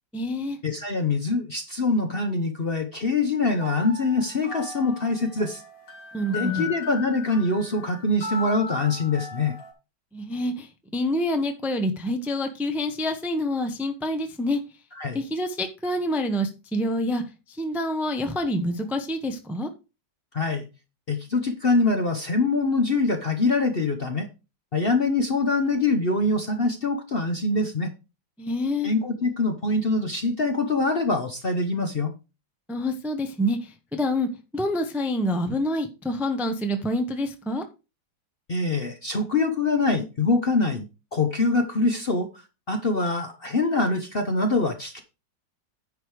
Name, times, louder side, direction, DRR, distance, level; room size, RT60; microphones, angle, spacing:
voice 1, 0.1-0.6 6.1-6.7 10.1-10.7 10.9-14.6 15.1-17.2 17.6-19.7 28.4-28.9 32.7-34.3 34.5-37.6, left 1 dB, ahead, 6 dB, 0.6 m, -27 dB
voice 2, 0.6-5.6 6.3-9.5 14.9-15.2 20.3-20.7 21.1-24.3 24.7-27.9 28.8-32.1 38.5-40.9 41.1-42.3 42.7-45.0, left 3 dB, 40° left, 5 dB, 0.9 m, -24 dB
sound 1, 3.5-9.7, left 3 dB, 80° left, 3.4 m, -37 dB
9.8 x 5.2 x 4.8 m, 0.30 s
omnidirectional pair, 2.0 m